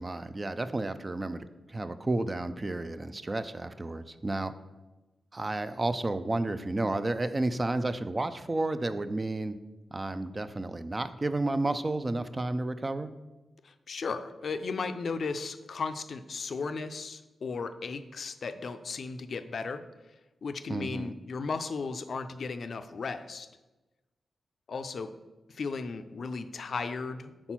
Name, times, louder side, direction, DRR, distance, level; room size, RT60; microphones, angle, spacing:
voice 1, 0.0-4.5 5.3-9.5 9.9-13.1 20.7-21.1, right 2 dB, 25° right, 11 dB, 0.3 m, -31 dB
voice 2, 13.6-19.8 20.4-23.5 24.7-25.1 25.5-27.5, left 4 dB, 60° left, 10 dB, 0.4 m, -35 dB
4.4 x 4.3 x 5.7 m, 1.1 s
cardioid pair, 95°, 0 cm